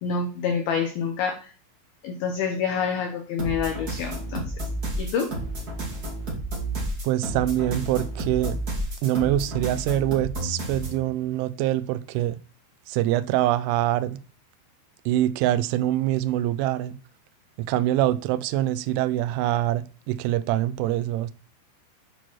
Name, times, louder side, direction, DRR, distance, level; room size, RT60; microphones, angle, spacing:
voice 1, 0.0-1.5 2.0-4.4 5.0-5.4, left 6 dB, 85° left, 2.1 m, -27 dB
sound 1, 3.4-11.0, right 1 dB, 40° right, 1.3 m, -31 dB
voice 2, 7.0-8.6 9.0-12.4 12.9-14.2 15.1-17.0 17.6-21.3, right 13 dB, 85° right, 2.9 m, -24 dB
9.0 x 4.5 x 4.3 m
omnidirectional pair, 5.7 m